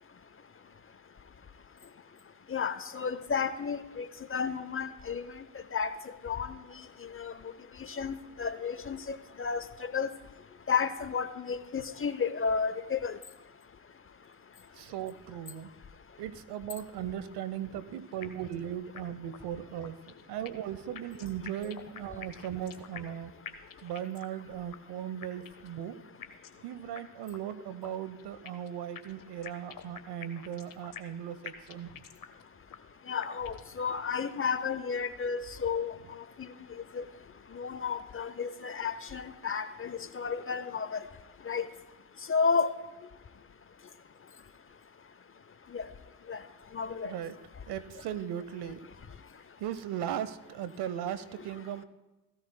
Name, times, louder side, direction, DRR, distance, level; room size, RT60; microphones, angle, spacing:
voice 1, 2.5-5.2 5.7-5.9 6.2-6.5 7.2-7.3 8.0-9.6 9.9-10.1 10.7-13.1 33.1-35.9 37.0-37.1 37.6-41.0 41.5-41.6 42.3-42.7 45.7-45.8 46.3-46.4 46.7-47.1, left 5 dB, 30° left, 13 dB, 0.8 m, -32 dB
voice 2, 14.7-15.7 16.2-23.3 23.8-26.0 26.6-32.0 47.0-47.4 47.7-48.9 49.6-51.8, right 10 dB, 60° right, 14 dB, 1.0 m, -38 dB
sound 1, 18.2-18.6 19.0-19.1 19.3-19.4 19.8-20.7 21.0-23.2 23.5-24.4 24.7-24.8 25.2-25.7 26.2-26.6 27.0-27.1 27.3-27.4 27.8-28.7 29.0-31.2 31.5-32.4 32.7-32.8 33.2-33.7, left 8 dB, 50° left, 1.3 m, -46 dB
16.5 x 16.0 x 2.2 m, 1.0 s
hypercardioid pair, 45°, 44 cm